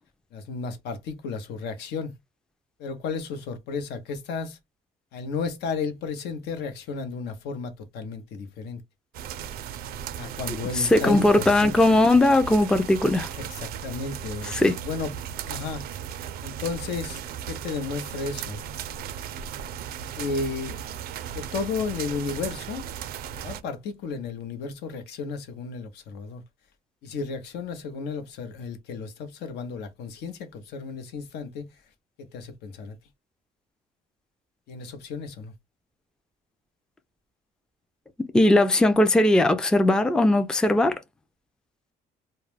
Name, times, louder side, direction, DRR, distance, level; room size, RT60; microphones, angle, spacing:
voice 1, 0.3-2.1 2.8-4.6 5.1-8.8 10.1-11.8 13.3-15.1 15.5-15.9 16.4-17.2 17.5-18.6 20.2-20.8 21.3-22.9 23.4-26.4 27.0-31.7 32.2-33.0 34.7-35.5, left 4 dB, 75° left, 0.7 m, -33 dB
Rain on the porch, 9.1-23.6, right 9 dB, 65° right, 0.4 m, -36 dB
voice 2, 10.7-13.3 14.5-14.8 38.2-41.0, left 1 dB, 5° left, 0.3 m, -19 dB
2.3 x 2.1 x 3.1 m
cardioid pair, 110°, 17 cm